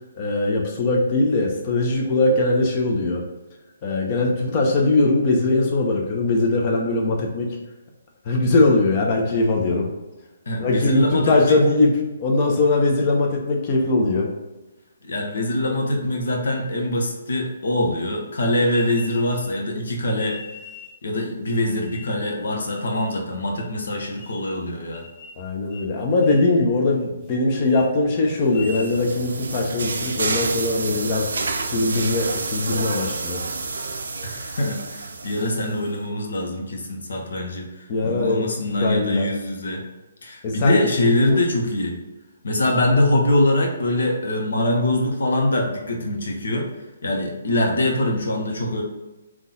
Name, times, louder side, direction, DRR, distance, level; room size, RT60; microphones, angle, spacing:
voice 1, 0.2-3.2 3.8-7.6 8.2-9.9 10.6-14.3 25.4-31.3 31.6-33.4 37.9-39.3 40.4-40.8 41.3-41.4, left 2 dB, 35° left, 0 dB, 0.9 m, -21 dB
voice 2, 10.5-11.6 15.0-20.4 21.0-25.0 34.2-37.7 38.0-39.8 40.2-42.0 42.4-46.7 47.0-48.8, left 1 dB, 65° left, 1 dB, 1.0 m, -23 dB
sound 1, 18.7-19.5 20.2-21.0 21.5-22.2 22.7-23.2 23.6-23.7 24.2-24.6 24.9-25.4 25.7-25.9 26.2-26.5 26.9-27.4 27.6-27.9 28.4-29.0, left 3 dB, ahead, 1.5 m, -42 dB
sound 2, 28.3-35.9, right 3 dB, 65° right, 0.5 m, -29 dB
3.7 x 3.1 x 3.9 m, 1.1 s
figure-of-eight pair, 135°, 0 cm